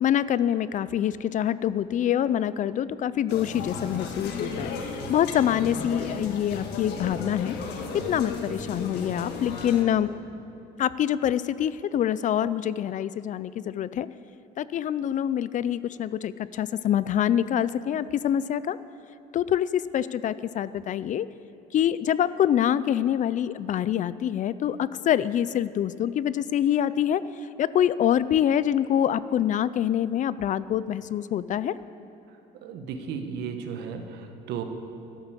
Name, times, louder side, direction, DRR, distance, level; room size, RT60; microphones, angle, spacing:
voice 1, 0.0-7.5 8.1-10.1 10.8-14.1 14.6-18.8 19.3-21.3 21.7-27.2 27.6-31.7, left 10 dB, 50° left, 17 dB, 0.4 m, -25 dB
sound 1, 3.3-9.8, left 4 dB, 80° left, 1.6 m, -34 dB
voice 2, 32.6-34.6, right 6 dB, 80° right, 6 dB, 1.3 m, -34 dB
12.0 x 11.5 x 7.5 m, 2.8 s
cardioid pair, 110°, 17 cm